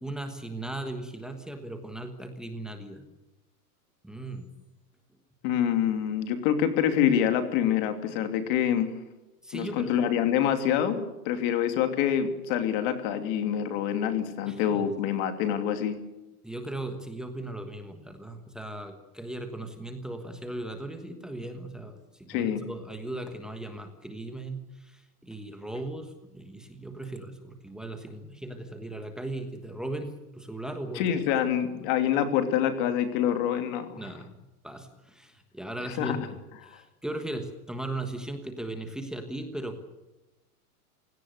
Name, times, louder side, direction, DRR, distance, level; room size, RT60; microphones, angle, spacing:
voice 1, 0.0-3.0 4.0-4.5 9.4-9.9 14.5-14.9 16.4-31.2 34.0-34.3 34.6-39.8, right 1 dB, ahead, 6 dB, 1.3 m, -38 dB
voice 2, 5.4-8.9 9.5-16.0 22.3-22.6 30.9-34.0 36.0-36.2 36.6-36.7, left 9 dB, 35° left, 8 dB, 2.7 m, -26 dB
28.5 x 17.5 x 6.6 m, 1.0 s
supercardioid pair, 165°, 45 cm